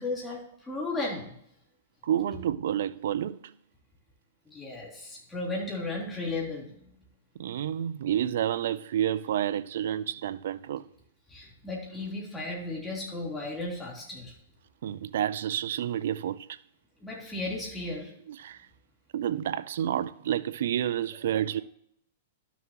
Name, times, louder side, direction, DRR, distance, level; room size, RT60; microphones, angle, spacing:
voice 1, 0.0-1.3 4.5-6.9 11.3-14.3 17.0-18.1, left 2 dB, 10° left, 3.6 m, -35 dB
voice 2, 2.0-3.5 7.4-10.8 14.8-16.5 18.3-18.6 19.1-21.6, right 10 dB, 70° right, 0.5 m, -29 dB
12.0 x 7.0 x 3.0 m
hypercardioid pair, 125°, 0 cm